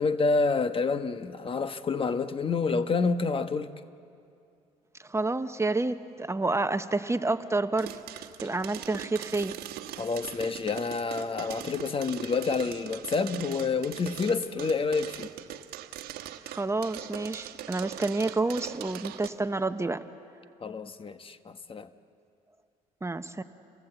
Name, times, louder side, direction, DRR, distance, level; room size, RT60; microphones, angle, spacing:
voice 1, 0.0-3.7 10.0-15.3 20.6-21.9, left 4 dB, 35° left, 1.2 m, -28 dB
voice 2, 5.0-9.6 16.5-20.0 23.0-23.4, right 2 dB, 15° right, 1.0 m, -29 dB
sound 1, 7.8-19.3, right 13 dB, 75° right, 1.2 m, -41 dB
28.5 x 18.5 x 8.1 m
supercardioid pair, 70°, 16 cm